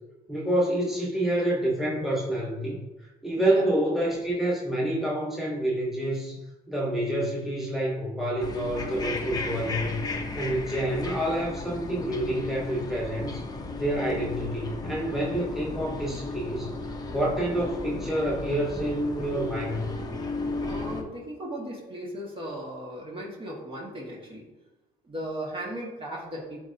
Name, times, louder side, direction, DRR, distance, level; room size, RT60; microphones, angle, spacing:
voice 1, 0.3-2.8 3.2-6.4 6.7-10.0 10.3-13.4 13.8-16.7 17.1-20.0, right 1 dB, ahead, -4 dB, 1.7 m, -28 dB
sound 1, 8.4-21.0, left 3 dB, 20° left, 1.0 m, -35 dB
voice 2, 20.4-24.5 25.0-26.6, right 1 dB, 30° right, -3 dB, 2.1 m, -37 dB
11.0 x 4.2 x 3.0 m, 1.1 s
cardioid pair, 110°, 17 cm